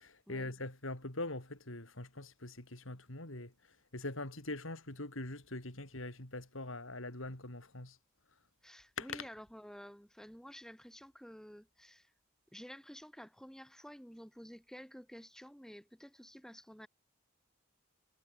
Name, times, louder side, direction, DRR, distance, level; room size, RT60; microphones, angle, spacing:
voice 1, 0.0-3.5 3.9-8.0 9.0-9.3, left 2 dB, 70° left, 4.2 m, -43 dB
voice 2, 8.6-12.1 12.5-16.9, equal, 5° left, 6.4 m, -52 dB
head